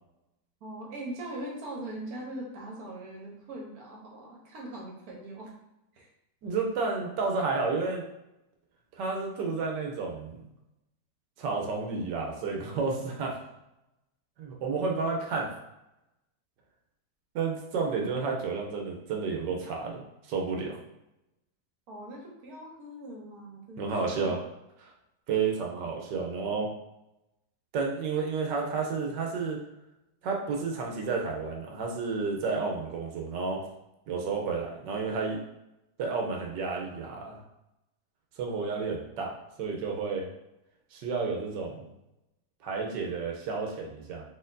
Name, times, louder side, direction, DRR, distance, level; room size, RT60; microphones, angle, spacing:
voice 1, 0.6-5.5 5.9-6.1 21.9-24.3, right 1 dB, 60° right, -2 dB, 1.5 m, -41 dB
voice 2, 6.4-8.0 9.0-10.4 11.4-13.3 14.4-15.5 17.3-20.8 23.8-24.4 24.8-24.9 25.3-26.7 27.7-29.6 30.2-33.6 34.1-35.4 36.0-37.4 38.4-40.3 40.9-41.9 42.6-44.2, right 4 dB, 85° right, 0 dB, 1.4 m, -31 dB
4.5 x 4.2 x 2.6 m, 0.88 s
omnidirectional pair, 1.8 m